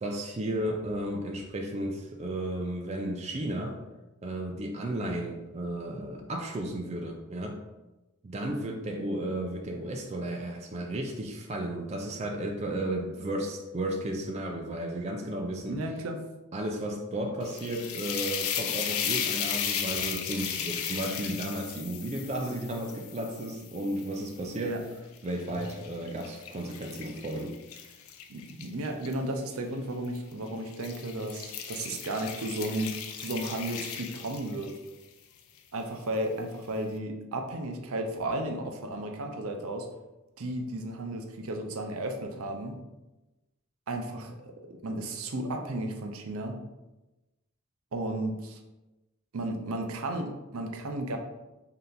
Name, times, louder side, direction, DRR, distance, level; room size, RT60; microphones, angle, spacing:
voice 1, 0.0-3.8 4.2-7.6 8.2-15.8 16.5-24.8 25.2-27.6, right 1 dB, 30° right, 2 dB, 0.4 m, -33 dB
voice 2, 15.7-16.2 24.6-24.8 28.3-34.7 35.7-39.9 40.4-42.8 43.9-46.5 47.9-48.6 49.3-51.2, right 1 dB, 80° right, 4 dB, 0.5 m, -34 dB
sound 1, 17.4-24.6 25.2-29.1 30.0-30.3 30.7-34.9, left 8 dB, 75° left, 0.4 m, -35 dB
3.3 x 2.8 x 3.8 m, 1.0 s
head